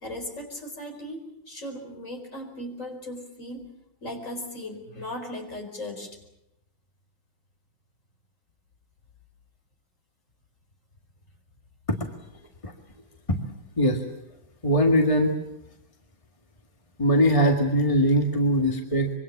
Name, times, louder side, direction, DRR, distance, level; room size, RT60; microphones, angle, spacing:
voice 1, 0.0-3.7 4.0-6.2, left 1 dB, 35° left, 3 dB, 5.0 m, -37 dB
voice 2, 14.6-15.3 17.0-19.1, equal, 15° left, 2 dB, 1.8 m, -21 dB
25.5 x 24.0 x 7.2 m, 0.86 s
omnidirectional pair, 2.2 m